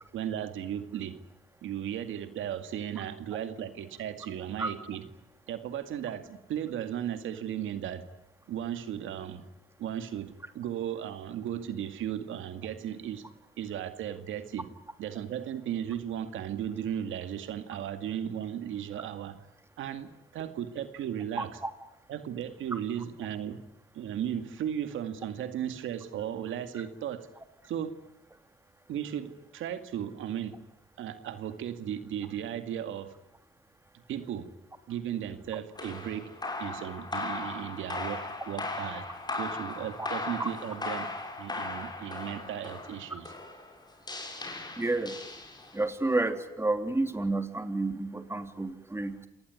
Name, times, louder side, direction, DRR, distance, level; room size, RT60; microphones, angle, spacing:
voice 1, 0.1-1.2 1.6-5.0 5.5-8.0 8.5-9.4 9.8-13.2 13.6-14.7 15.0-19.4 19.8-21.6 22.1-23.6 23.9-27.3 27.6-27.9 28.9-30.5 31.0-33.1 34.1-34.5 34.9-36.3 36.6-39.1 39.4-41.1 41.4-43.3, right 10 dB, 80° right, 9 dB, 2.2 m, -35 dB
sound 1, 35.7-45.9, left 2 dB, 20° left, 6.4 m, -38 dB
voice 2, 44.8-45.2 45.7-49.3, right 2 dB, 15° right, 8 dB, 3.1 m, -30 dB
28.0 x 19.0 x 9.7 m, 0.84 s
cardioid pair, 90°, 20 cm